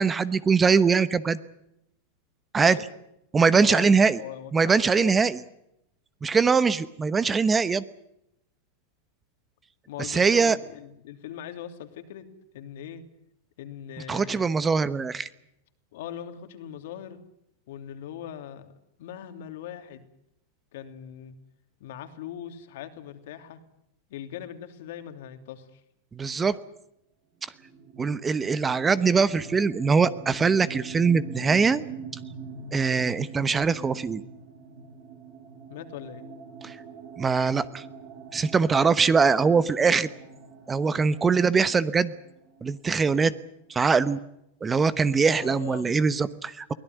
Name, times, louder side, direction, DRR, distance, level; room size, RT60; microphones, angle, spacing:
voice 1, 0.0-1.4 2.5-2.8 3.3-4.2 4.5-5.4 6.2-7.8 10.0-10.6 14.1-15.3 26.1-26.6 28.0-31.8 32.7-34.2 36.6-36.7 37.2-37.8 38.3-40.1 40.7-42.1 42.6-43.3 43.7-44.2 44.6-46.7, right 5 dB, 15° right, 16 dB, 1.0 m, -22 dB
voice 2, 3.4-5.1 9.9-12.3 12.5-13.0 13.6-14.5 15.9-17.2 17.7-18.7 19.0-20.1 20.7-21.4 21.8-23.6 24.1-25.8 35.7-36.2 45.3-46.1, left 10 dB, 70° left, 8 dB, 2.9 m, -40 dB
sound 1, 27.6-43.2, right 5 dB, 50° right, 7.0 m, -44 dB
23.0 x 17.5 x 9.4 m, 0.80 s
hypercardioid pair, 125°, 0 cm